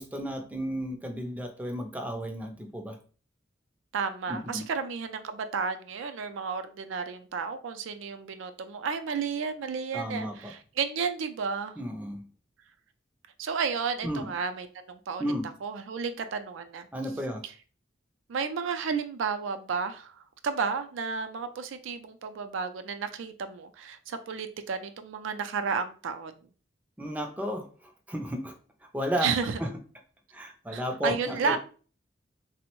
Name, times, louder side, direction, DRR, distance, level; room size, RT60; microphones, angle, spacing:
voice 1, 0.0-3.0 4.3-4.7 9.9-10.5 11.8-12.2 14.0-14.3 15.2-15.5 16.9-17.4 27.0-27.7 28.1-28.5 28.9-29.3 29.6-29.7 30.3-31.6, equal, 10° right, 4 dB, 0.3 m, -33 dB
voice 2, 3.9-11.8 13.4-15.3 15.6-16.9 18.3-26.3 29.2-29.6 30.7-31.6, right 5 dB, 90° right, 9 dB, 0.4 m, -32 dB
3.5 x 2.0 x 2.9 m, 0.39 s
head